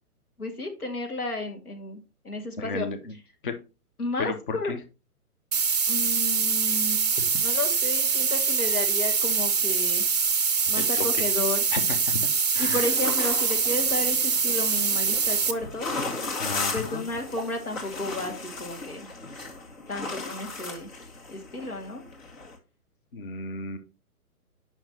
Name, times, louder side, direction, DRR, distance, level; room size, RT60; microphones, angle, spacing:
voice 1, 0.4-2.9 4.0-4.7 5.9-10.0 10.7-11.6 12.6-15.9 16.7-19.1 19.9-20.9 21.3-22.0, left 2 dB, 75° left, 4 dB, 2.2 m, -32 dB
voice 2, 2.6-3.1 3.4-3.5 4.2-4.8 10.8-11.3 11.7-12.2 12.5-12.8 16.4-17.0 23.1-23.8, left 4 dB, 35° left, 10 dB, 0.8 m, -33 dB
sound 1, 5.5-15.5, right 5 dB, 30° right, 0.5 m, -24 dB
sound 2, 12.7-22.6, left 3 dB, 60° left, 2.0 m, -36 dB
8.8 x 5.8 x 2.9 m, 0.31 s
figure-of-eight pair, 130°, 45 cm